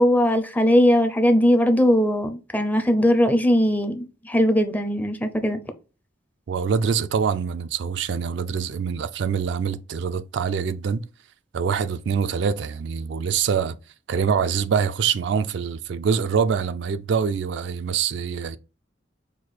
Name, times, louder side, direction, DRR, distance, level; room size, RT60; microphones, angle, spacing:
voice 1, 0.0-5.6, equal, 10° left, 0.4 m, -19 dB
voice 2, 6.5-11.0 11.5-13.8 14.1-18.6, right 6 dB, 65° right, 0.3 m, -24 dB
4.7 x 2.2 x 4.1 m
head